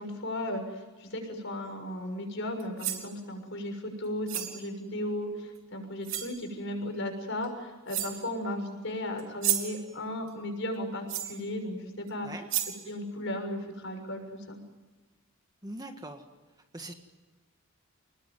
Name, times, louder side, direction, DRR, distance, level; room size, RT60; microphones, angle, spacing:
voice 1, 0.0-12.3 12.9-14.6, left 1 dB, 55° left, 5 dB, 6.6 m, -35 dB
sound 1, 2.6-3.1 4.3-4.6 5.6-5.7 6.0-6.4 7.4-7.5 7.9-8.3 9.2-9.8 11.1-11.4 12.1-12.2 12.5-12.9, right 11 dB, 60° right, 3.3 m, -32 dB
voice 2, 15.6-16.3 16.7-16.9, right 1 dB, 15° right, 5 dB, 1.7 m, -41 dB
28.0 x 20.5 x 9.3 m, 1.3 s
head